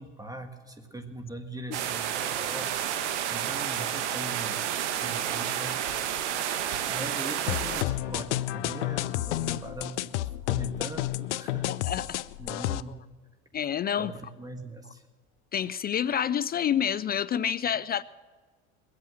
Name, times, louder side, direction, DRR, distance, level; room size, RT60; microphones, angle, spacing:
voice 1, 0.0-3.0 3.3-4.7 5.0-6.4 6.9-10.1 10.4-11.8 12.4-12.9 14.0-15.0, right 2 dB, 10° right, 6 dB, 1.7 m, -41 dB
sound 1, 1.7-7.8, right 10 dB, 85° right, 1.1 m, -30 dB
sound 2, 7.5-12.8, left 16 dB, 85° left, 0.6 m, -31 dB
voice 2, 11.7-12.2 12.6-12.7 13.5-14.1 15.5-18.0, left 9 dB, 30° left, 17 dB, 0.4 m, -28 dB
22.5 x 8.5 x 6.4 m, 1.5 s
hypercardioid pair, 85°, 34 cm